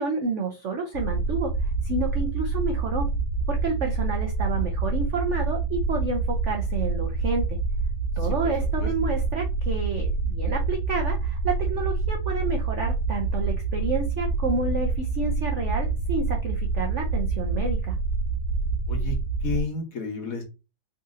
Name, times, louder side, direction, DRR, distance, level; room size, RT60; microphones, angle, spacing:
voice 1, 0.0-3.1 3.5-7.6 8.2-18.0, right 4 dB, 75° right, 2 dB, 0.6 m, -30 dB
sound 1, 0.9-19.6, right 3 dB, 70° left, 1.8 m, -27 dB
voice 2, 8.2-8.5 8.8-8.9 18.9-20.4, left 4 dB, 55° left, 2 dB, 1.1 m, -32 dB
4.1 x 2.7 x 3.6 m, 0.28 s
omnidirectional pair, 2.2 m